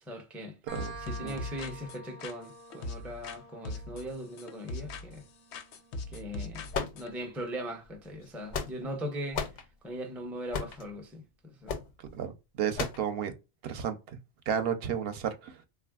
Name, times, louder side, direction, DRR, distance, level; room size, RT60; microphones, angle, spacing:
voice 1, 0.1-0.6 1.0-5.2 6.1-9.4 9.8-11.8, equal, ahead, 0.3 m, -40 dB
sound 1, 0.7-8.1, right 2 dB, 40° right, 0.8 m, -50 dB
sound 2, 0.8-3.4 3.7-5.3 5.5-7.1, left 2 dB, 85° left, 0.8 m, -40 dB
sound 3, 6.7-7.5 8.2-9.0 9.3-9.6 10.5-10.9 11.7-11.9 12.8-13.1, left 5 dB, 55° left, 0.5 m, -34 dB
voice 2, 12.1-13.3 13.6-14.2 14.5-15.6, right 8 dB, 70° right, 0.7 m, -33 dB
3.3 x 2.4 x 2.2 m
omnidirectional pair, 1.1 m